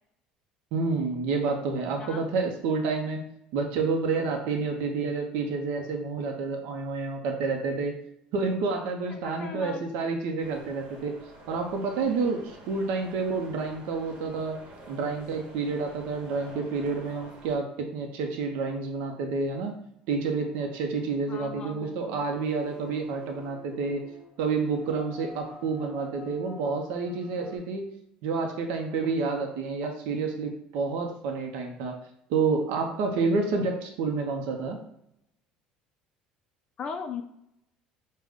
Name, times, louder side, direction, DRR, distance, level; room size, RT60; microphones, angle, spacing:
voice 1, 0.7-3.2 3.5-8.0 8.3-11.2 11.5-14.6 14.9-19.7 20.1-24.0 24.4-27.8 28.2-32.0 32.3-34.8, right 4 dB, 75° right, 3 dB, 0.6 m, -29 dB
voice 2, 9.1-9.8 21.3-22.3 36.8-37.2, left 6 dB, 35° left, 5 dB, 0.3 m, -38 dB
sound 1, 10.4-17.6, right 1 dB, 50° right, 1.0 m, -49 dB
sound 2, 20.4-27.6, left 3 dB, 10° right, 1.1 m, -50 dB
4.9 x 2.1 x 3.5 m, 0.77 s
cardioid pair, 125°, 3 cm